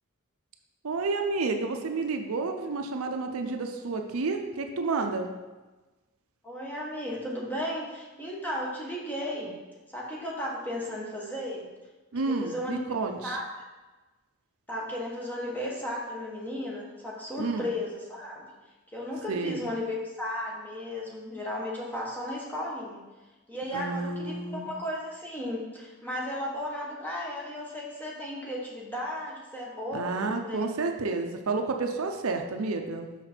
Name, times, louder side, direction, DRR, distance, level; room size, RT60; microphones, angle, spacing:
voice 1, 0.8-5.3 12.1-13.4 17.4-17.7 19.3-19.7 23.7-24.7 29.9-33.1, right 3 dB, 70° right, 5 dB, 0.6 m, -30 dB
voice 2, 6.4-9.6 9.9-11.7 12.1-12.8 13.2-13.7 14.7-18.5 18.9-23.0 23.5-30.7, left 1 dB, 10° left, -4 dB, 1.4 m, -35 dB
5.9 x 5.8 x 4.4 m, 1.2 s
head